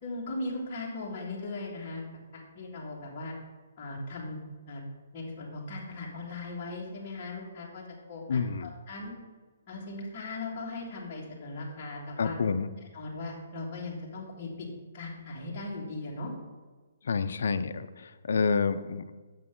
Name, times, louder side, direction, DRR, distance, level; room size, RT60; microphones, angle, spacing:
voice 1, 0.0-2.0 2.3-3.3 3.8-4.8 5.1-7.8 8.1-9.1 9.7-12.4 12.9-14.7 14.9-16.3, left 2 dB, 20° left, -5 dB, 1.7 m, -38 dB
voice 2, 8.3-8.7 12.2-12.7 17.0-19.2, left 5 dB, 60° left, 10 dB, 0.5 m, -29 dB
8.2 x 6.8 x 3.7 m, 1.3 s
hypercardioid pair, 175°, 0 cm